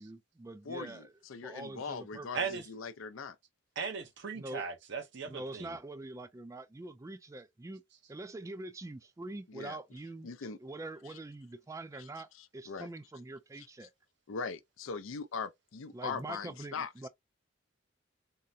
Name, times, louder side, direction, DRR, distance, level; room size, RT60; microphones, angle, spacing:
voice 1, 0.0-1.1 1.4-2.6 4.3-4.7 5.3-7.8 8.1-10.3 10.6-13.9 15.9-17.1, right 2 dB, 15° right, 0.3 m, -44 dB
voice 2, 0.6-3.4 9.5-9.8 10.2-10.6 11.0-11.2 11.9-12.1 12.3-12.9 13.6-13.9 14.3-17.1, left 5 dB, 80° left, 0.5 m, -41 dB
voice 3, 3.8-5.8, right 5 dB, 60° right, 0.7 m, -37 dB
3.6 x 2.1 x 2.6 m
head